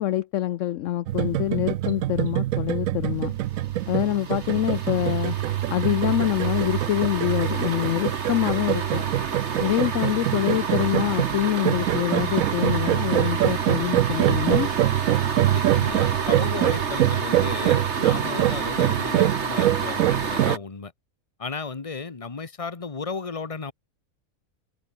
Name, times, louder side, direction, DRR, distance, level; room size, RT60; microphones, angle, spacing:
voice 1, 0.0-3.3 3.9-5.3 5.7-9.0 9.6-14.7, left 13 dB, 65° left, 0.9 m, -25 dB
sound 1, 1.1-20.6, right 14 dB, 70° right, 1.0 m, -25 dB
sound 2, 3.4-20.6, right 5 dB, 50° right, 1.9 m, -30 dB
voice 2, 15.5-20.9 21.4-23.7, left 4 dB, 25° left, 1.3 m, -34 dB
omnidirectional pair, 1.5 m